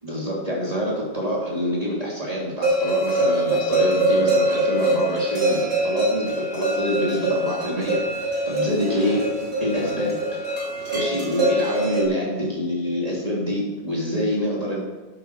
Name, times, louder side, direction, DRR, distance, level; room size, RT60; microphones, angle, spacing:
voice 1, 0.0-9.2 9.6-10.4 10.9-14.8, equal, 35° right, -4 dB, 2.7 m, -26 dB
sound 1, 2.6-12.0, right 1 dB, 80° right, 3.4 m, -23 dB
12.0 x 12.0 x 4.6 m, 1.2 s
omnidirectional pair, 1.1 m